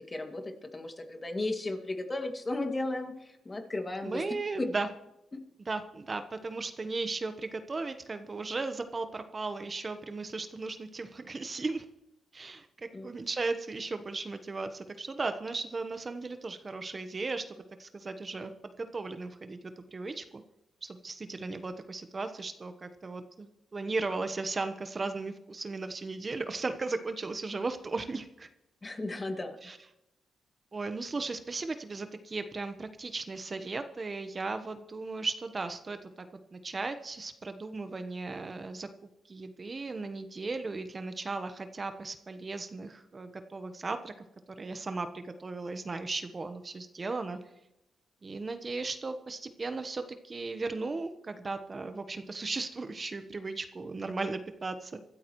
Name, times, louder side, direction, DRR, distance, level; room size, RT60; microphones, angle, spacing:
voice 1, 0.0-4.2 5.3-5.4 12.9-13.1 28.8-29.7, left 2 dB, 30° left, 4 dB, 2.3 m, -35 dB
voice 2, 4.0-4.9 5.7-11.8 12.3-12.7 13.0-20.4 20.8-28.5 29.6-29.8 30.7-36.1 36.5-38.9 39.3-44.1 44.6-47.4 48.2-55.0, right 3 dB, 35° right, 8 dB, 1.2 m, -36 dB
25.0 x 13.0 x 3.2 m, 0.90 s
cardioid pair, 65°, 0 cm